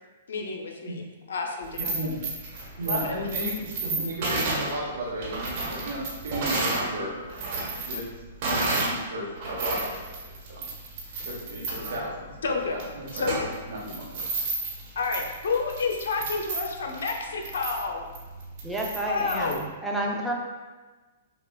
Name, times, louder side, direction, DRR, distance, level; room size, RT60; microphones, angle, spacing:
voice 1, 0.3-1.9 2.8-3.1 12.4-12.8 13.1-13.6 15.0-18.1 19.0-19.6, left 4 dB, 75° left, 2 dB, 0.6 m, -30 dB
sound 1, 1.6-6.9 7.2-9.0 9.3-19.6, right 3 dB, 50° right, 1.2 m, -32 dB
voice 2, 1.8-2.2 2.8-7.2 7.8-8.0 8.4-10.7 11.2-12.4 12.7-13.3 13.6-14.2, equal, 75° right, -4 dB, 1.0 m, -34 dB
voice 3, 18.6-20.3, right 1 dB, 5° right, -2 dB, 0.6 m, -30 dB
6.0 x 2.3 x 2.3 m, 1.3 s
hypercardioid pair, 130°, 0 cm